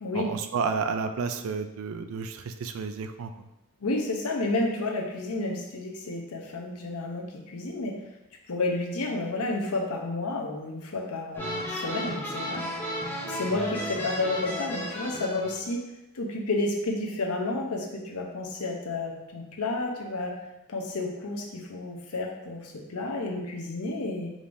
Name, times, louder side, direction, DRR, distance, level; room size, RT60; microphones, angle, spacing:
voice 1, 0.1-3.5, right 5 dB, 65° right, 8 dB, 0.4 m, -31 dB
voice 2, 3.8-7.9 8.5-12.6 13.2-15.8 16.1-20.3 20.7-24.3, left 2 dB, 80° left, 0 dB, 0.8 m, -31 dB
sound 1, 11.3-15.6, equal, 10° left, 0.6 m, -33 dB
5.0 x 3.3 x 2.6 m, 0.94 s
head